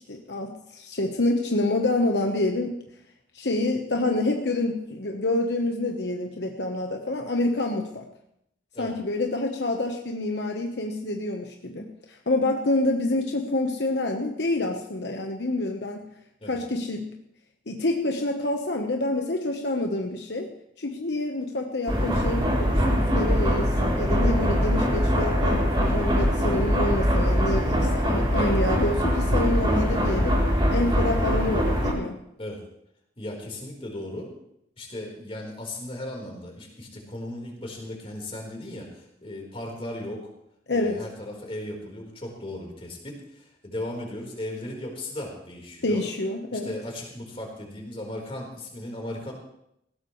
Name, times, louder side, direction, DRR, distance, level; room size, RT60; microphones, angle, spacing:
voice 1, 0.0-2.8 3.3-8.1 8.8-16.0 16.5-17.1 17.7-30.4 30.7-32.2 40.7-41.0 45.8-46.7, left 2 dB, 70° left, 3 dB, 1.1 m, -27 dB
sound 1, 21.9-31.9, equal, 25° right, 3.4 m, -23 dB
voice 2, 33.2-34.3 34.8-40.3 40.7-46.1 46.5-49.3, left 1 dB, 30° left, -1 dB, 4.1 m, -36 dB
19.0 x 16.5 x 3.2 m, 0.77 s
head